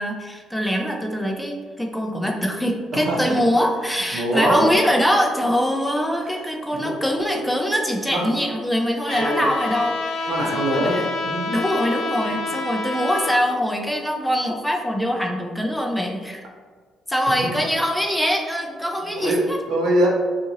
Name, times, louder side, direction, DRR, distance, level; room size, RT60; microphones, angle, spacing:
voice 1, 0.0-11.1 11.5-16.5 17.1-19.6, equal, 5° left, 2 dB, 0.4 m, -23 dB
voice 2, 4.1-4.7 6.7-7.0 8.1-8.3 9.1-9.5 10.3-11.6 17.4-17.5 19.2-20.1, right 1 dB, 75° right, -2 dB, 0.7 m, -23 dB
Trumpet, 9.1-13.4, left 3 dB, 75° left, 0.4 m, -28 dB
2.6 x 2.5 x 2.8 m, 1.5 s
supercardioid pair, 75°, 0 cm